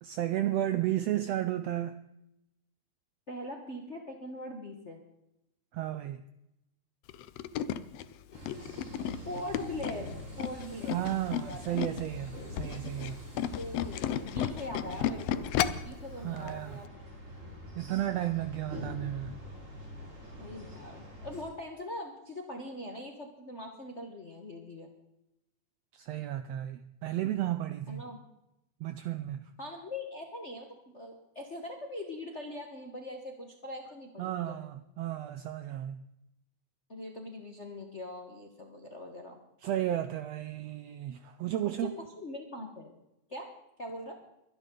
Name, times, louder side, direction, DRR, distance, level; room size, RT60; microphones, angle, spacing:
voice 1, 0.0-2.0 5.7-6.2 10.9-13.2 16.2-16.8 17.8-19.4 25.9-28.0 28.8-29.4 34.2-36.0 39.6-41.9, right 13 dB, 80° right, 1.5 m, -33 dB
voice 2, 3.3-5.0 9.2-11.0 11.4-11.8 13.4-15.5 15.8-16.9 20.4-24.9 27.9-28.2 29.6-34.6 36.9-39.4 42.2-43.0 43.3-43.5 43.8-44.2, left 1 dB, 40° left, 1.0 m, -42 dB
Tools, 7.1-12.1 12.4-15.9 16.4-16.5 16.8-16.9, left 10 dB, 75° left, 1.5 m, -33 dB
sound 1, 8.3-21.4, equal, 25° right, 4.9 m, -45 dB
23.5 x 10.5 x 3.9 m
omnidirectional pair, 3.5 m